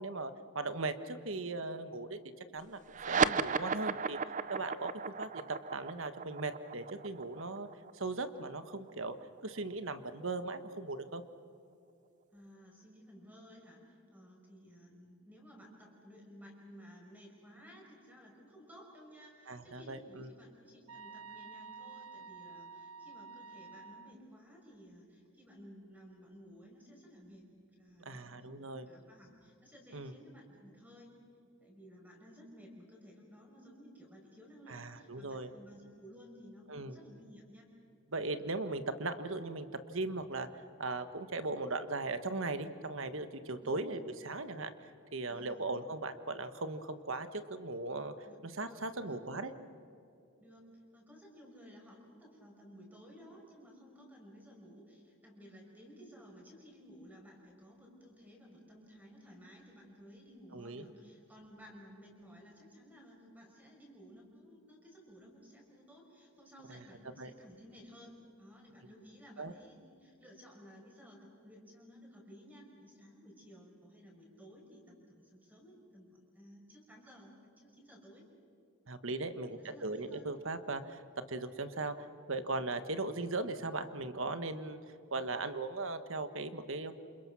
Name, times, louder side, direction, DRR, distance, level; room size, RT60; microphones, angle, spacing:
voice 1, 0.0-2.2 2.5-4.2 4.5-7.7 7.9-9.1 9.4-11.2 19.5-20.3 28.0-28.9 29.9-30.1 34.7-35.5 36.7-37.0 38.1-40.5 40.8-48.1 48.4-49.5 60.5-60.8 66.7-66.8 67.2-67.3 69.4-69.5 78.9-81.0 81.3-84.8 85.1-86.9, right 3 dB, 65° right, 10 dB, 1.4 m, -38 dB
sound 1, 2.9-9.7, right 5 dB, 35° right, 0.6 m, -35 dB
voice 2, 12.3-27.5 27.8-28.6 28.8-31.1 31.6-37.7 43.6-43.9 45.3-45.7 48.3-49.2 50.4-78.3 79.0-80.3, equal, 10° right, 0 dB, 5.4 m, -56 dB
sound 2, 20.9-24.1, right 5 dB, 85° right, 0.6 m, -50 dB
28.5 x 27.5 x 6.2 m, 2.6 s
head